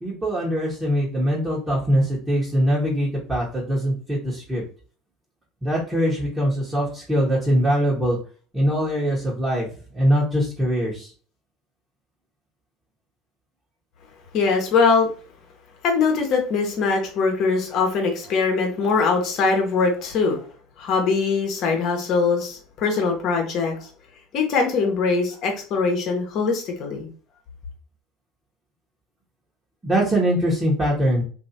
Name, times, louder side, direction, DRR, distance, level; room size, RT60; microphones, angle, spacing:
voice 1, 0.0-4.6 5.6-8.2 8.5-9.7 9.9-11.1 29.8-31.2, equal, 15° right, -6 dB, 1.3 m, -22 dB
voice 2, 14.3-15.1 15.8-20.4 20.8-23.9 24.3-27.1, left 4 dB, 50° left, 3 dB, 1.1 m, -22 dB
3.0 x 2.7 x 2.8 m, 0.40 s
hypercardioid pair, 75°, 0 cm